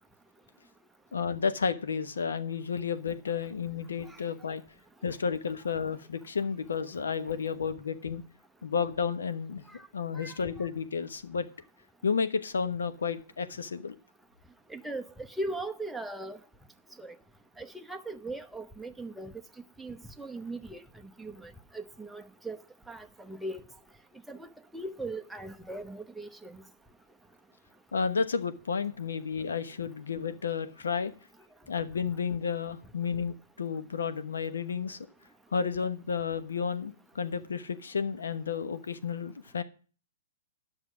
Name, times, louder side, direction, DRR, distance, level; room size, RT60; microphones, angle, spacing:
voice 1, 1.1-4.6 5.0-8.2 8.6-9.6 9.9-11.5 12.0-14.0 27.9-31.1 31.7-35.0 35.5-39.6, left 6 dB, 85° left, 1.1 m, -32 dB
voice 2, 14.7-15.0 15.4-16.4 17.0-17.1 17.6-19.3 19.8-20.8 21.2-22.6 22.9-23.6 24.3-24.5 24.7-26.6, right 2 dB, 5° right, 0.8 m, -39 dB
9.9 x 6.5 x 6.2 m
hypercardioid pair, 130°, 0 cm